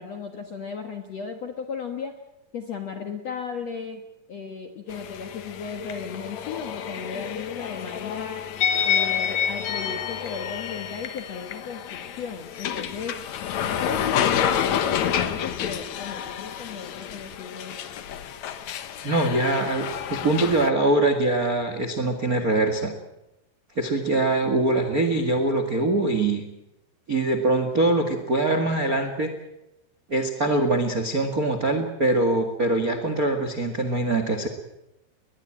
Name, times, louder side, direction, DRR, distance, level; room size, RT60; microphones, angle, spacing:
voice 1, 0.0-2.2 2.5-4.0 4.3-8.4 8.8-13.2 13.7-17.9, left 6 dB, 65° left, 5 dB, 1.6 m, -35 dB
sound 1, 4.9-20.7, left 9 dB, 90° left, 1.6 m, -29 dB
voice 2, 19.0-22.9 23.7-26.4 27.1-29.3 30.1-34.5, right 2 dB, 75° right, 7 dB, 0.8 m, -23 dB
21.5 x 20.5 x 8.9 m, 0.90 s
omnidirectional pair, 5.2 m